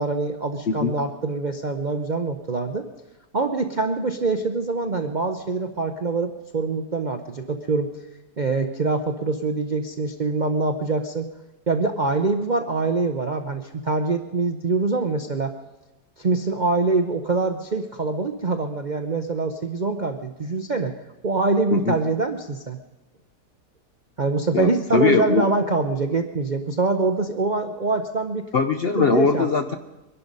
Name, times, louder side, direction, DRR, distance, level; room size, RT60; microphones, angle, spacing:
voice 1, 0.0-2.9 3.3-7.9 8.4-11.3 11.7-15.5 16.2-20.9 21.2-22.8 24.2-28.5 29.0-29.5, right 3 dB, 50° right, 5 dB, 0.5 m, -24 dB
voice 2, 24.5-25.5 28.5-29.8, left 5 dB, 55° left, 8 dB, 0.7 m, -21 dB
23.0 x 11.5 x 5.3 m, 1.1 s
omnidirectional pair, 1.8 m